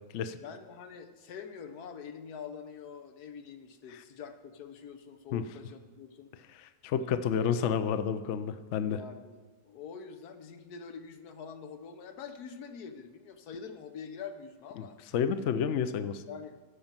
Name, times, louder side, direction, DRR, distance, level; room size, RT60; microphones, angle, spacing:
voice 1, 0.4-6.3 6.9-7.3 8.9-15.0 16.3-16.6, left 6 dB, 85° left, 8 dB, 1.4 m, -45 dB
voice 2, 6.8-9.0 15.1-16.2, left 7 dB, 60° left, 11 dB, 0.8 m, -29 dB
13.0 x 5.3 x 7.4 m, 1.4 s
omnidirectional pair, 1.6 m